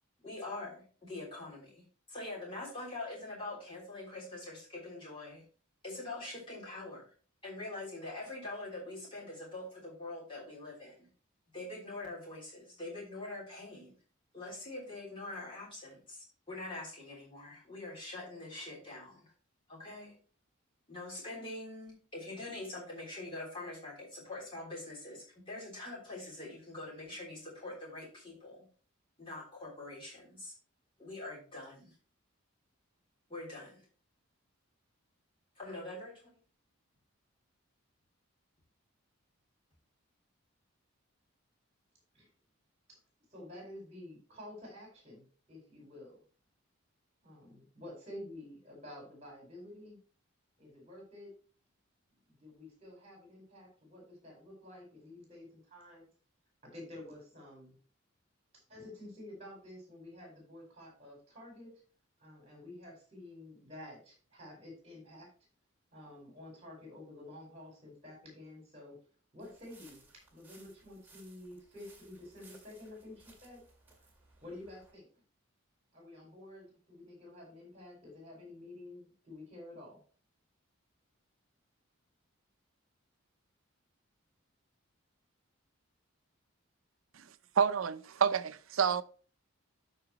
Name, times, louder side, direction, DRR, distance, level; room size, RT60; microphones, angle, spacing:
voice 1, 0.2-5.4 5.8-7.0 7.4-11.1 11.5-13.9 14.3-19.3 19.7-20.1 20.9-28.7 29.2-30.5 31.0-31.9 33.3-33.9 35.5-36.4, left 2 dB, 25° left, 3.4 m, -44 dB
voice 2, 43.3-46.2 47.2-50.0 50.6-51.3 52.3-56.1 56.6-57.8 58.5-61.8 62.2-65.3 65.9-69.0 69.3-70.0 70.3-73.6 74.4-75.1 75.9-80.0, left 1 dB, 30° right, 4.3 m, -50 dB
sound 1, 69.4-74.9, right 3 dB, 10° right, 2.0 m, -61 dB
voice 3, 87.6-89.0, right 6 dB, 70° right, 0.5 m, -29 dB
13.5 x 4.9 x 2.9 m
head